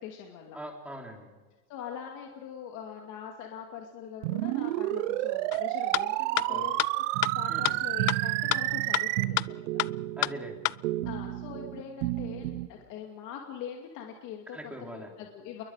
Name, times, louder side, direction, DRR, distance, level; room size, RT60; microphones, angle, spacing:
voice 1, 0.0-0.6 1.7-9.4 11.0-15.6, left 8 dB, 40° left, 1 dB, 2.6 m, -42 dB
voice 2, 0.5-1.3 6.5-6.7 7.5-7.8 10.2-10.6 11.0-11.1 14.5-15.1, equal, 5° right, 1 dB, 3.8 m, -42 dB
sound 1, 4.2-9.2, right 18 dB, 50° right, 0.9 m, -30 dB
sound 2, 5.5-5.6 5.9-6.0 6.4-6.5 6.8-6.9 7.2-7.3 7.6-7.7 8.1-8.2 8.5-8.6 8.9-9.0 9.4-9.5 9.8-9.9 10.2-10.3 10.6-10.7, left 19 dB, 75° left, 0.6 m, -26 dB
sound 3, 7.1-12.7, right 16 dB, 70° right, 1.2 m, -34 dB
28.5 x 22.5 x 5.0 m, 1.2 s
supercardioid pair, 135°, 47 cm